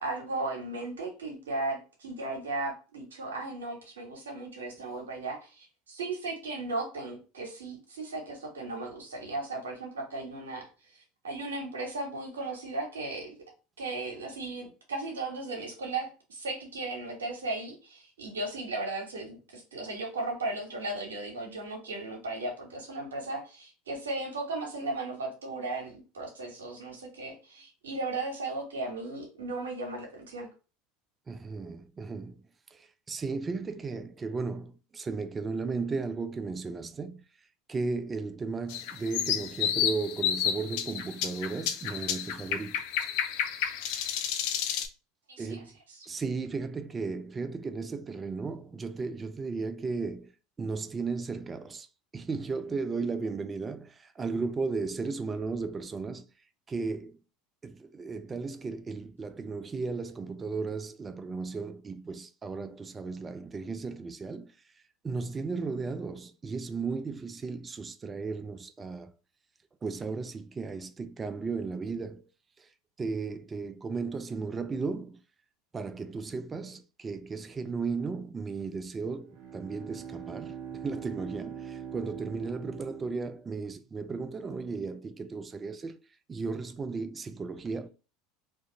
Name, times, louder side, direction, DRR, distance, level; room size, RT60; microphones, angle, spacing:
voice 1, 0.0-10.7 10.9-13.4 13.8-30.5 45.3-45.5, right 2 dB, 85° right, 0.9 m, -36 dB
voice 2, 31.3-32.4 32.7-37.2 37.7-42.8 45.4-45.7 46.1-50.3 50.6-51.9 52.1-56.2 56.7-57.2 57.6-64.6 65.0-69.1 69.8-72.2 72.6-72.7 73.0-75.2 75.7-86.0 86.3-87.9, right 4 dB, 25° right, 0.3 m, -35 dB
sound 1, 38.7-44.9, left 9 dB, 65° left, 0.3 m, -31 dB
Bowed string instrument, 79.2-83.9, right 8 dB, 60° right, 0.7 m, -43 dB
2.4 x 2.2 x 2.8 m
hypercardioid pair, 85°, 0 cm